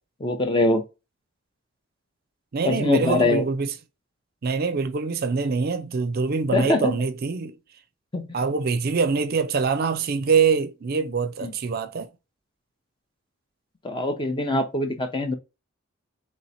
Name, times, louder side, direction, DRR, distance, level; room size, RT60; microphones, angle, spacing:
voice 1, 0.2-0.8 2.6-3.5 6.5-6.9 8.1-8.4 11.4-11.5 13.8-15.3, left 2 dB, 25° left, 0.7 m, -23 dB
voice 2, 2.5-3.7 4.4-7.5 8.3-12.1, right 5 dB, 50° right, 0.4 m, -24 dB
3.2 x 3.1 x 4.2 m
head